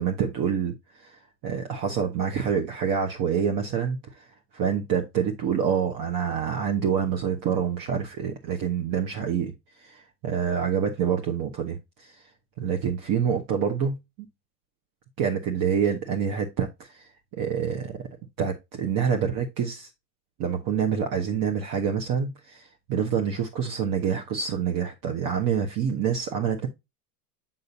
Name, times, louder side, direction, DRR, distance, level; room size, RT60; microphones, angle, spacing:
voice 1, 0.0-4.3 4.5-9.5 9.8-12.2 12.6-14.0 15.2-18.1 18.4-19.9 20.4-26.7, right 7 dB, 45° right, 1.1 m, -27 dB
6.6 x 5.6 x 2.7 m
hypercardioid pair, 90°, 46 cm